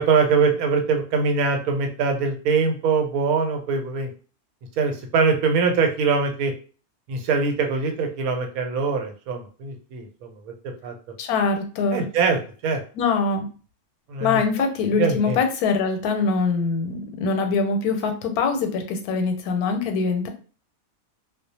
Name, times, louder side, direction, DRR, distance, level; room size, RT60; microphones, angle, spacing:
voice 1, 0.0-4.1 4.8-6.5 7.1-10.3 10.8-10.9 11.9-12.8 14.1-14.4 15.0-15.4, right 5 dB, 80° right, 4 dB, 1.0 m, -22 dB
voice 2, 11.2-12.1 13.0-13.5 14.2-20.3, left 4 dB, 90° left, 5 dB, 1.1 m, -23 dB
2.3 x 2.1 x 2.7 m, 0.38 s
omnidirectional pair, 1.5 m